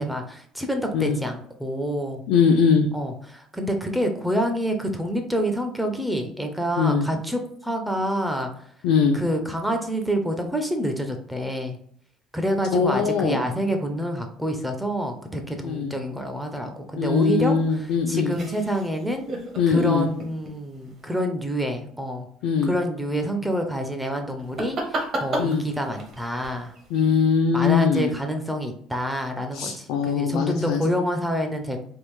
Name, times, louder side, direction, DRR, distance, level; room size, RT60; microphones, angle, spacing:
voice 1, 0.0-2.2 2.9-8.5 9.1-11.8 12.3-19.3 19.7-22.3 22.6-26.7 27.5-31.9, equal, 5° right, 4 dB, 0.4 m, -27 dB
voice 2, 2.3-2.9 6.8-7.1 8.8-9.2 12.7-13.5 15.6-15.9 17.0-18.3 19.6-20.1 22.4-22.7 25.4-25.6 26.9-28.1 29.5-30.9, left 6 dB, 75° left, 2 dB, 0.4 m, -21 dB
sound 1, 17.2-21.2 24.4-27.2, right 1 dB, 35° right, 0.7 m, -35 dB
3.5 x 2.3 x 3.0 m, 0.64 s
cardioid pair, 155°, 0 cm